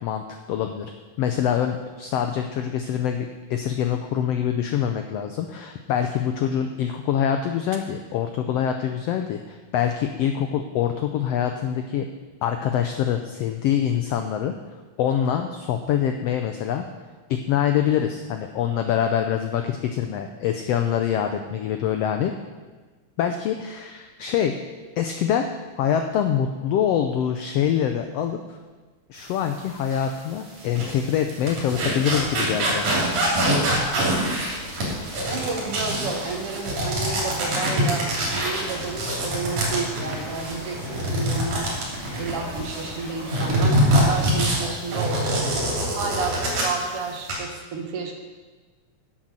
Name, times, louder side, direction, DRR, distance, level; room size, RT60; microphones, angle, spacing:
voice 1, 0.0-0.9 1.2-12.1 12.4-14.5 15.0-16.8 17.3-22.3 23.2-24.5 25.0-25.4 25.8-28.4 29.1-33.0, left 9 dB, 90° left, 6 dB, 1.4 m, -25 dB
sound 1, 29.9-30.0 30.6-42.9 43.3-46.8 47.1-47.3, right 1 dB, 75° right, 4.5 m, -24 dB
sound 2, 33.1-44.6, left 1 dB, 30° left, 2.5 m, -40 dB
voice 2, 35.3-41.7 42.2-45.5 46.0-48.1, right 4 dB, 55° right, 2 dB, 2.0 m, -31 dB
10.5 x 7.9 x 6.2 m, 1.3 s
omnidirectional pair, 3.6 m